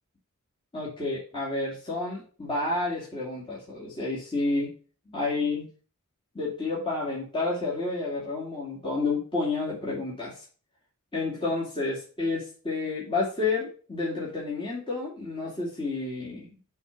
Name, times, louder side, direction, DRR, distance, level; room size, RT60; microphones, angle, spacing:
voice 1, 0.7-4.7 5.1-5.7 6.3-10.4 11.1-16.6, left 3 dB, 25° left, -7 dB, 2.5 m, -30 dB
7.3 x 4.0 x 5.9 m, 0.38 s
head